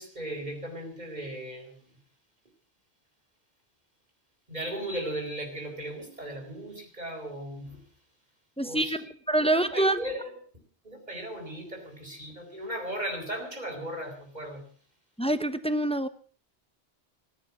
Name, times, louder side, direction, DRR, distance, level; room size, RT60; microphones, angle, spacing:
voice 1, 0.0-1.8 4.5-7.8 8.6-8.9 9.4-14.7, right 1 dB, 40° right, 2 dB, 4.5 m, -37 dB
voice 2, 8.6-10.0 15.2-16.1, right 1 dB, 5° left, 12 dB, 0.9 m, -26 dB
17.5 x 10.5 x 7.2 m, 0.43 s
omnidirectional pair, 1.1 m